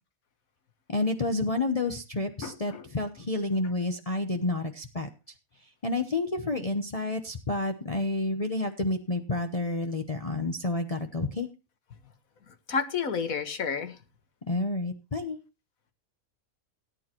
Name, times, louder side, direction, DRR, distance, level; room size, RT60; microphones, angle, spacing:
voice 1, 0.9-5.1 5.8-11.5 14.5-15.4, left 2 dB, 30° left, 0.9 m, -29 dB
voice 2, 2.4-2.8 12.7-14.0, left 6 dB, 70° left, 1.7 m, -30 dB
18.0 x 9.4 x 3.0 m
omnidirectional pair, 1.5 m